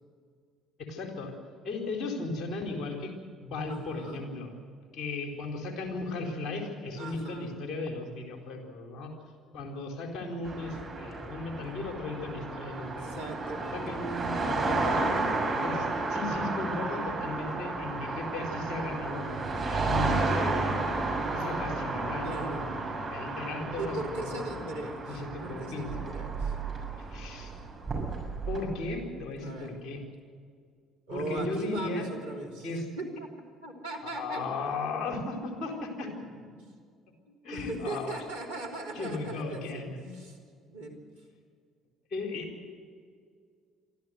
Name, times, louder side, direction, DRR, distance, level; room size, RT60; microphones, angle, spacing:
voice 1, 0.8-1.4 1.6-3.1 3.4-4.5 4.9-9.1 9.5-13.1 13.7-15.1 15.4-20.7 21.3-22.7 23.1-24.4 25.1-25.9 27.1-27.6 28.5-30.0 31.1-32.1 32.6-32.9 34.0-36.1 37.4-38.2 38.9-40.0 42.1-42.7, left 3 dB, 50° left, 2 dB, 4.2 m, -36 dB
voice 2, 3.7-4.2 7.0-7.5 13.0-14.0 22.2-22.6 23.8-26.6 29.4-29.7 31.1-32.7 33.0-33.3 33.6-34.5 35.5-35.6 36.0-36.7 37.3-40.4 40.7-41.0, right 2 dB, 85° right, -3 dB, 3.2 m, -39 dB
sound 1, 10.4-28.6, right 3 dB, 35° right, 6.7 m, -32 dB
25.0 x 13.5 x 8.0 m, 2.1 s
figure-of-eight pair, 50°, 0 cm